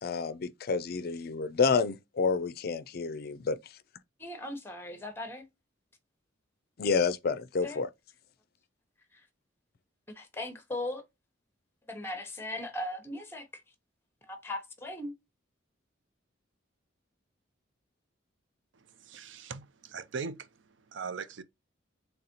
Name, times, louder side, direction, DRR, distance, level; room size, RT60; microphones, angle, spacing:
voice 1, 0.0-3.6 6.8-7.9, left 5 dB, 50° left, 0.4 m, -29 dB
voice 2, 4.2-5.5 7.6-7.8 9.1-9.2 10.1-11.0 11.9-13.5 14.3-15.1, left 1 dB, 10° left, 0.9 m, -38 dB
voice 3, 18.8-20.5 20.9-21.4, right 5 dB, 65° right, 0.5 m, -40 dB
4.0 x 3.5 x 2.9 m
head